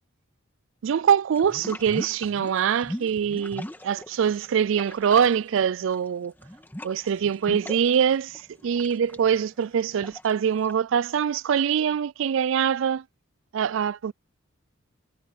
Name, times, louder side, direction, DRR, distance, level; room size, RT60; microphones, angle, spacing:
voice 1, 0.8-6.3 6.8-13.0 13.5-14.1, right 8 dB, 65° right, 0.3 m, -24 dB
sound 1, 1.4-4.5 4.7-10.7, equal, 10° left, 1.6 m, -39 dB
head